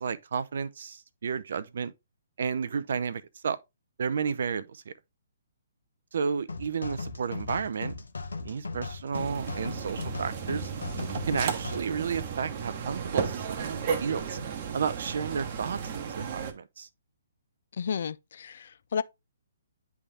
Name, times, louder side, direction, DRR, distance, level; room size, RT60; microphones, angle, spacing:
voice 1, 0.0-1.9 2.4-3.6 4.0-4.9 6.1-7.9 8.4-10.7 11.3-14.4 14.7-16.9, right 6 dB, 55° right, 0.6 m, -32 dB
sound 1, 6.5-11.8, left 3 dB, 70° left, 1.0 m, -38 dB
sound 2, 9.1-16.5, right 6 dB, 40° right, 1.0 m, -34 dB
voice 2, 17.7-19.0, left 7 dB, 55° left, 0.4 m, -32 dB
9.6 x 3.6 x 3.4 m
figure-of-eight pair, 130°, 0 cm